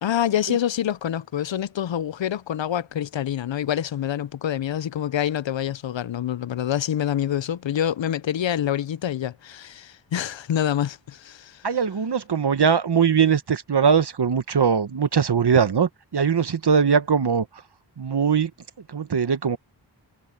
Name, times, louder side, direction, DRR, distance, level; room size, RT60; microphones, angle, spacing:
voice 1, 0.0-11.6, left 10 dB, 80° left, 0.6 m, -26 dB
voice 2, 11.6-17.5 18.0-18.5 18.9-19.6, right 6 dB, 65° right, 1.0 m, -21 dB
wide cardioid pair, 80°, 44 cm